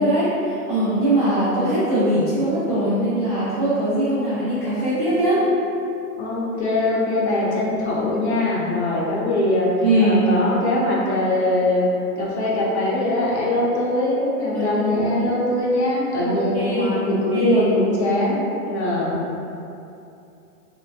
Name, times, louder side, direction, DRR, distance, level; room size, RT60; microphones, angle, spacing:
voice 1, 0.0-5.4 9.8-10.2 14.5-14.8 16.2-16.9 17.3-17.6, right 1 dB, 10° right, -18 dB, 0.4 m, -21 dB
voice 2, 6.2-9.7 10.0-11.9 12.2-19.2, left 1 dB, 50° left, -5 dB, 0.6 m, -22 dB
3.3 x 2.1 x 2.6 m, 2.7 s
hypercardioid pair, 165°, 46 cm